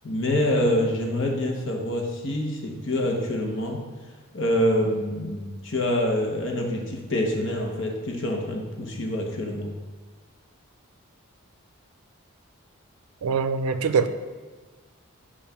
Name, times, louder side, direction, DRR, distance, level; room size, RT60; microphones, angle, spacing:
voice 1, 0.0-3.8 4.3-9.7, left 1 dB, 60° left, 1 dB, 0.9 m, -26 dB
voice 2, 13.2-14.1, right 5 dB, 85° right, 10 dB, 0.4 m, -23 dB
6.9 x 2.5 x 5.5 m, 1.3 s
head